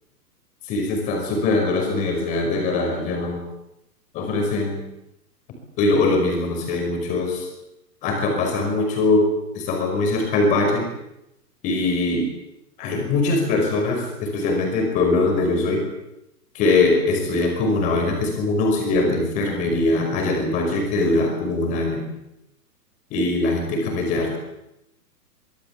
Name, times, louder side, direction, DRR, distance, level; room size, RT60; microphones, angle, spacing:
voice 1, 0.7-3.4 4.1-4.8 5.8-7.5 8.0-9.3 9.5-10.9 11.6-12.3 12.8-15.8 16.5-22.1 23.1-24.4, left 2 dB, 15° left, 3 dB, 5.4 m, -22 dB
25.0 x 20.5 x 8.4 m, 0.87 s
hypercardioid pair, 175°, 49 cm